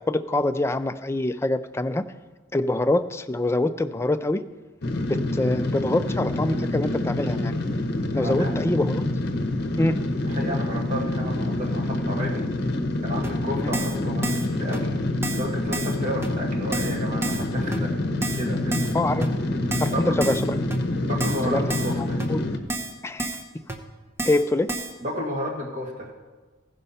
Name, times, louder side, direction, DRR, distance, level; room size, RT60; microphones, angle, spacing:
voice 1, 0.0-2.0 2.5-4.4 5.0-7.7 8.1-9.1 9.8-10.0 13.6-13.7 18.9-19.3 19.8-20.6 21.5-21.6 22.3-22.4 23.0-23.4 24.2-24.7, left 2 dB, 15° left, 10 dB, 0.3 m, -25 dB
sound 1, 4.8-22.6, left 1 dB, 55° left, 0.8 m, -27 dB
voice 2, 8.1-8.5 10.2-12.5 13.0-15.0 15.3-17.9 18.3-19.0 19.9-20.2 21.0-22.2 25.0-26.1, equal, 40° right, 0 dB, 1.7 m, -32 dB
Keyboard (musical), 13.2-13.3 13.7-14.0 14.2-14.5 14.7-14.8 15.2-15.5 15.7-16.0 16.2-16.3 16.7-17.0 17.2-17.4 17.7-17.8 18.2-18.4 18.7-18.9 19.2-19.3 19.7-19.9 20.2-20.4 20.7-20.8 21.2-21.4 21.7-21.9 22.2-22.3 22.7-22.9 23.2-23.4 23.7-23.8 24.2-24.4 24.7-24.9, right 2 dB, 15° right, 0.8 m, -30 dB
15.0 x 5.3 x 5.6 m, 1.3 s
head